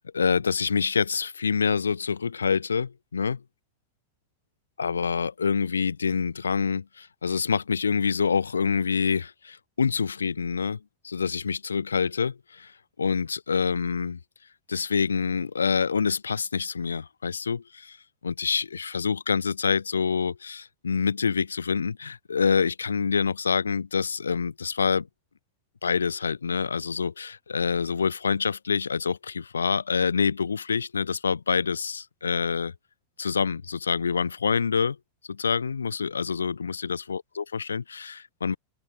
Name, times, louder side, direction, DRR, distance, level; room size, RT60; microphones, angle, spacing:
voice 1, 0.0-3.4 4.8-10.8 11.0-12.7 13.0-14.2 14.7-18.0 18.2-25.1 25.8-32.7 33.2-35.0 35.3-38.6, left 6 dB, 75° left, 0.8 m, -26 dB
open air
figure-of-eight pair, 90°, 0 cm